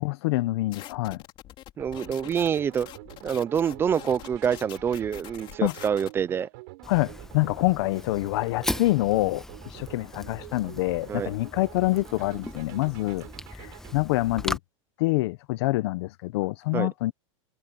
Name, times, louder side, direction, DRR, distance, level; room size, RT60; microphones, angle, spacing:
voice 1, 0.0-1.2 5.6-5.7 6.9-13.3 13.5-14.6 15.0-17.1, left 19 dB, 55° left, 1.0 m, -26 dB
sound 1, 0.7-6.1, left 13 dB, 30° left, 3.5 m, -45 dB
voice 2, 1.8-2.9 3.2-6.5 11.1-11.3 16.7-16.9, right 8 dB, 15° right, 0.4 m, -26 dB
sound 2, 1.8-13.9, right 23 dB, 50° right, 7.1 m, -47 dB
Fire, 6.8-14.6, left 1 dB, 5° left, 1.1 m, -38 dB
supercardioid pair, 155°, 17 cm